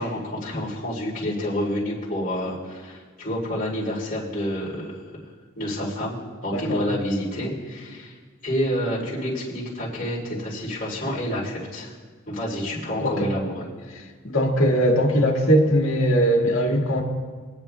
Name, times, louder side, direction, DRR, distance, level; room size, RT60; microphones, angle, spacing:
voice 1, 0.0-5.0 5.6-8.1 8.4-11.9 12.3-13.7, equal, 45° left, -6 dB, 3.1 m, -28 dB
voice 2, 6.5-6.8 13.0-13.3 14.0-17.0, equal, 70° left, 0 dB, 1.8 m, -20 dB
24.0 x 8.9 x 2.3 m, 1.5 s
head